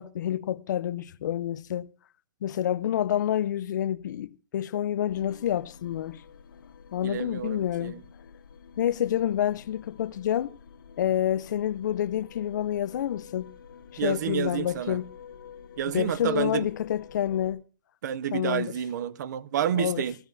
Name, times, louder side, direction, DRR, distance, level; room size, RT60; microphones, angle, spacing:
voice 1, 0.0-1.9 2.4-6.2 6.9-8.0 8.8-10.5 11.0-13.5 13.9-15.0 15.9-17.6 18.3-18.7 19.7-20.0, left 10 dB, 60° left, 0.5 m, -28 dB
sound 1, 5.1-17.5, left 7 dB, 80° left, 1.8 m, -49 dB
voice 2, 7.0-8.0 14.0-15.0 15.8-16.7 18.0-20.2, right 10 dB, 55° right, 0.5 m, -29 dB
17.0 x 15.0 x 2.6 m
hypercardioid pair, 165°, 11 cm